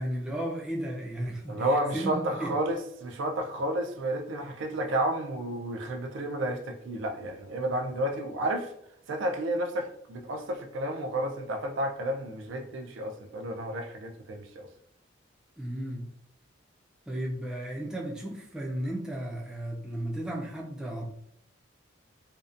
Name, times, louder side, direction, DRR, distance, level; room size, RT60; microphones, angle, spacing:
voice 1, 0.0-2.6 15.6-16.1 17.1-21.1, right 1 dB, 5° right, 0.3 m, -34 dB
voice 2, 1.5-8.7 9.1-14.7, right 1 dB, 75° right, 0.4 m, -31 dB
2.6 x 2.1 x 2.4 m
head